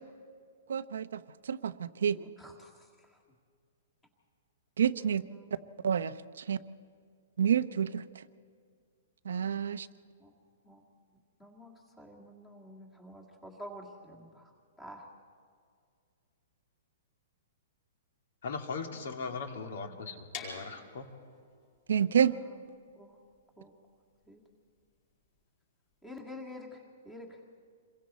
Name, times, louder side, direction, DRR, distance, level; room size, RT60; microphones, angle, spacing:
voice 1, 0.7-2.2 4.8-5.2 5.8-6.1 6.5-6.6 7.4-8.0 9.2-9.9 21.9-22.3, right 8 dB, 80° right, 11 dB, 0.8 m, -28 dB
voice 2, 2.2-2.7 5.0-5.6 10.2-10.3 10.7-10.8 11.4-14.4 14.8-15.0 19.1-19.6 19.8-19.9 22.4-22.5 22.9-23.1 23.6-23.7 24.3-24.4 26.0-26.8 27.0-27.4, left 1 dB, 5° left, 0 dB, 1.9 m, -49 dB
voice 3, 18.4-21.1, left 4 dB, 55° left, 4 dB, 2.2 m, -39 dB
sound 1, 20.3-26.1, left 5 dB, 35° left, 5.2 m, -49 dB
28.0 x 22.5 x 4.2 m, 2.1 s
hypercardioid pair, 180°, 0 cm